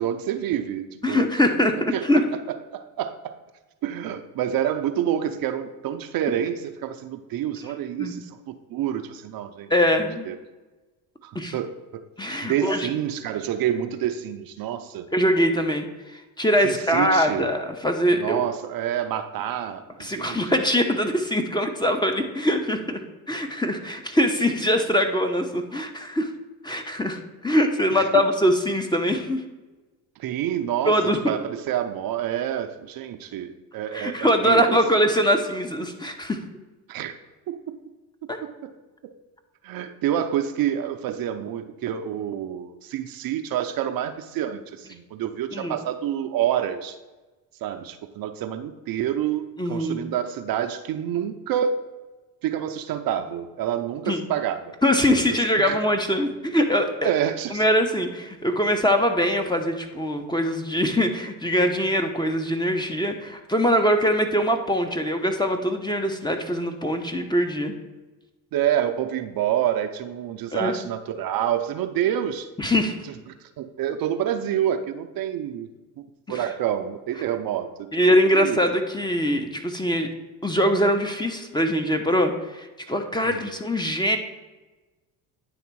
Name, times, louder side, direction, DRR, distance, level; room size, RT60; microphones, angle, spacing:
voice 1, 0.0-1.3 1.9-2.2 2.5-3.3 3.8-8.4 8.7-9.7 10.3-10.4 11.2-12.0 12.4-15.1 16.6-17.5 18.1-20.4 27.9-28.1 30.2-34.8 36.9-37.1 37.5-37.8 38.4-38.7 39.0-39.1 39.6-47.0 47.6-51.8 52.4-54.8 55.3-55.8 57.0-57.6 68.5-72.5 73.6-75.7 76.3-77.9 78.3-78.6 83.2-83.6, right 10 dB, 55° right, 8 dB, 0.6 m, -28 dB
voice 2, 1.0-2.2 8.0-8.1 9.7-10.3 11.3-11.5 12.2-12.9 15.1-18.5 20.0-23.0 23.3-26.3 26.6-29.4 30.9-31.2 33.9-36.4 38.3-38.4 45.5-45.8 49.6-50.0 54.1-54.2 54.8-57.1 57.5-67.7 70.5-70.7 72.6-72.9 76.3-76.5 77.9-80.1 80.4-84.2, equal, 10° left, 5 dB, 0.8 m, -23 dB
9.4 x 3.3 x 4.6 m, 1.2 s
hypercardioid pair, 70°, 43 cm